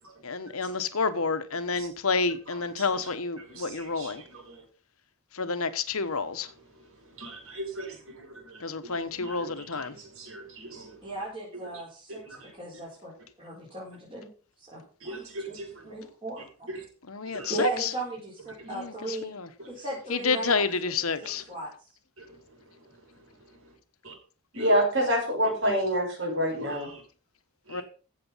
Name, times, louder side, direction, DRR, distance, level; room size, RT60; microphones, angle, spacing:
voice 1, 0.2-4.2 5.4-6.5 8.6-9.9 17.1-17.9 18.7-18.9 19.2-19.5 20.1-21.4 27.7-27.8, left 4 dB, 85° left, 1.2 m, -29 dB
voice 2, 2.5-3.1 3.4-4.6 6.8-11.0 11.5-11.6 12.1-12.5 15.0-15.9 16.7-16.8 17.3-17.5 18.6-18.8 19.6-19.7 21.2-21.3 22.2-22.4 23.5-23.6 24.0-24.1 24.5-24.8 25.4-25.8 26.5-27.0 27.7-27.8, right 2 dB, 75° right, 5.4 m, -43 dB
voice 3, 11.0-13.1 13.4-14.3 14.6-15.5 15.8-16.7 17.5-19.3 19.7-20.7 21.5-21.7, right 2 dB, 25° right, 5.0 m, -36 dB
voice 4, 24.5-26.9, equal, 55° right, 5.7 m, -25 dB
15.5 x 6.7 x 5.6 m
head